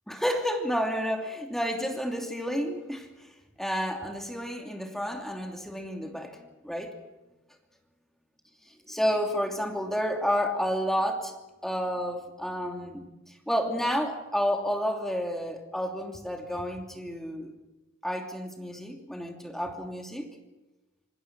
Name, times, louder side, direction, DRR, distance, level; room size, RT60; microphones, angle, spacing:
voice 1, 0.1-3.1 3.6-6.9 8.9-11.3 11.6-13.0 13.5-17.5 18.0-20.2, equal, ahead, 3 dB, 2.9 m, -30 dB
27.0 x 20.0 x 6.1 m, 1.0 s
head